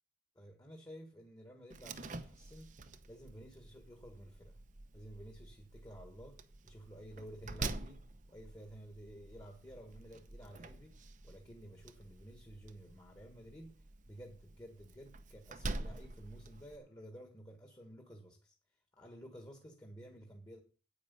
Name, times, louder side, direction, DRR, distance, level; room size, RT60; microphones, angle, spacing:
voice 1, 0.3-2.8 3.1-4.6 4.9-11.0 11.2-18.5 19.0-20.6, equal, 20° left, 1.6 m, -53 dB
Slam, 1.7-16.8, right 2 dB, 40° right, 0.8 m, -47 dB
9.8 x 8.8 x 5.5 m
head